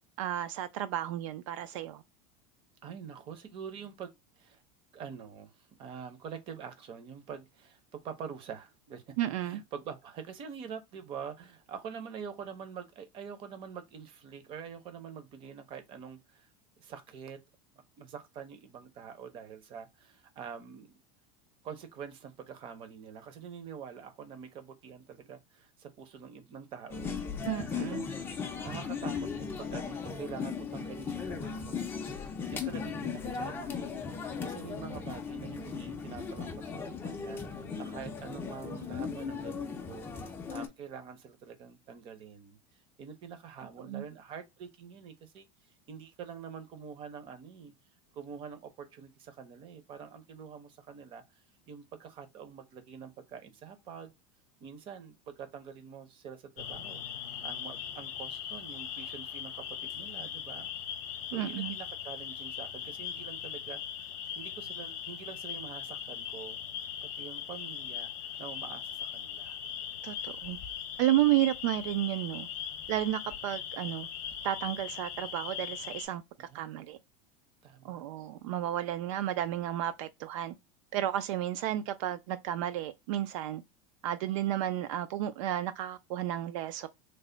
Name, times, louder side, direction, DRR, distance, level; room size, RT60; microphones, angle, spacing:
voice 1, 0.2-2.0 9.2-9.6 27.5-28.1 43.8-44.0 61.3-61.8 70.0-70.6 71.0-72.5 72.9-74.1 74.4-77.0 77.8-80.5 80.9-83.6 84.0-86.9, right 13 dB, 70° right, 0.4 m, -32 dB
voice 2, 2.8-4.1 4.4-4.6 4.9-9.2 9.4-16.5 16.8-17.4 18.0-20.9 21.6-31.9 32.2-40.1 40.5-42.6 43.0-45.5 45.9-47.7 48.1-51.4 51.7-54.1 54.6-57.0 57.4-60.7 61.3-64.1 64.4-66.6 67.0-69.6 73.3-73.4 76.5-76.8 77.6-78.0, right 7 dB, 30° right, 0.6 m, -46 dB
sound 1, 26.9-40.7, left 6 dB, 15° left, 0.4 m, -37 dB
sound 2, 56.6-76.1, left 9 dB, 45° left, 0.8 m, -40 dB
3.3 x 2.1 x 3.8 m
supercardioid pair, 165°, 17 cm